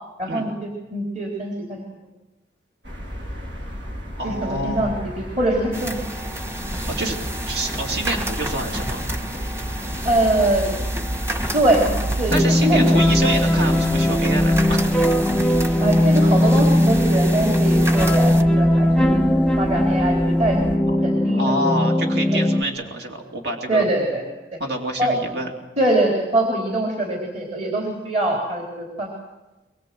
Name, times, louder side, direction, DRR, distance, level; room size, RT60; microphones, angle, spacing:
voice 1, 0.2-1.8 4.2-6.0 10.0-10.7 11.5-11.9 12.2-12.3 12.6-13.0 15.8-19.2 19.6-20.6 21.0-21.6 22.3-22.4 23.7-24.2 25.0-25.1 25.8-29.1, right 1 dB, 40° right, -1 dB, 3.8 m, -23 dB
sound 1, 2.8-20.8, equal, 90° right, 3.5 m, -32 dB
voice 2, 4.2-5.0 7.0-7.2 7.4-9.0 12.3-14.9 21.3-23.8 24.6-25.5, right 1 dB, 65° right, 1 dB, 2.8 m, -27 dB
sound 2, 5.7-18.4, right 1 dB, 15° right, 1.4 m, -31 dB
sound 3, 12.3-22.6, left 1 dB, 5° left, 0.7 m, -18 dB
23.5 x 22.0 x 7.7 m, 1.1 s
head